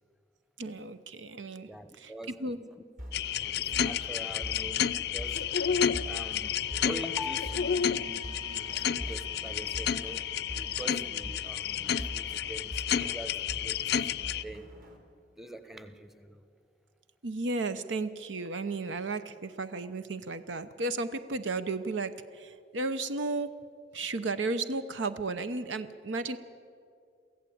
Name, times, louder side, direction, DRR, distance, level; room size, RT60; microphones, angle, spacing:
voice 1, 0.6-1.7 2.0-2.1 2.4-2.6 17.2-23.5 23.9-26.4, right 3 dB, 85° right, 11 dB, 0.8 m, -34 dB
voice 2, 1.6-2.8 3.2-5.6 6.0-14.1 14.4-14.8 15.4-16.4, equal, ahead, 11 dB, 0.9 m, -44 dB
sound 1, 3.0-15.0, equal, 50° right, 2.8 m, -44 dB
sound 2, 3.1-14.4, left 8 dB, 60° left, 0.5 m, -31 dB
sound 3, 6.6-12.7, right 4 dB, 25° right, 1.1 m, -54 dB
23.5 x 15.5 x 8.6 m, 2.4 s
head